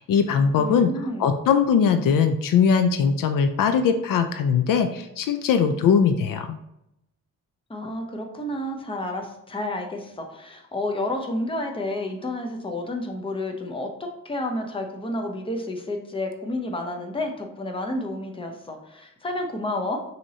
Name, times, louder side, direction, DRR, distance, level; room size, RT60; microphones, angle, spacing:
voice 1, 0.0-6.6, left 6 dB, 75° left, 8 dB, 0.5 m, -21 dB
voice 2, 0.6-1.3 7.7-20.0, left 1 dB, 15° left, 3 dB, 0.6 m, -30 dB
6.0 x 2.9 x 2.7 m, 0.83 s
wide cardioid pair, 125°, 33 cm